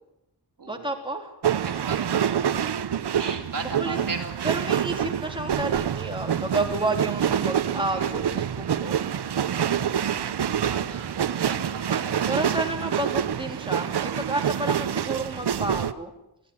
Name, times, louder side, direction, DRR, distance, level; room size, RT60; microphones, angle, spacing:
voice 1, 0.7-1.3 3.6-4.0 4.4-9.0 12.3-16.1, right 2 dB, 10° right, 2 dB, 3.4 m, -30 dB
sound 1, 1.4-15.9, right 9 dB, 75° right, 1.0 m, -26 dB
voice 2, 1.6-2.6 3.2-4.3 9.3-12.4 12.8-12.9, right 4 dB, 50° right, 1 dB, 3.9 m, -37 dB
23.0 x 16.0 x 9.7 m, 0.87 s
wide cardioid pair, 140°, 40 cm